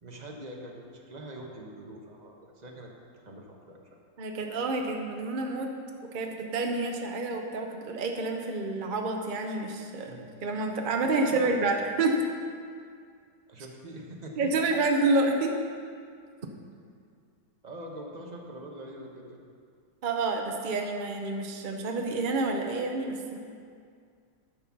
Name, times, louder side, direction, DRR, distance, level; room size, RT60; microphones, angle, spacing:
voice 1, 0.0-2.9 3.2-4.0 10.1-10.3 11.0-11.8 13.5-14.6 17.6-19.4, right 1 dB, 30° right, 0 dB, 1.0 m, -43 dB
voice 2, 4.2-5.7 6.1-10.1 10.4-12.2 14.4-15.5 20.0-23.4, right 3 dB, 50° right, 2 dB, 0.6 m, -28 dB
10.5 x 6.7 x 6.0 m, 2.2 s
omnidirectional pair, 2.0 m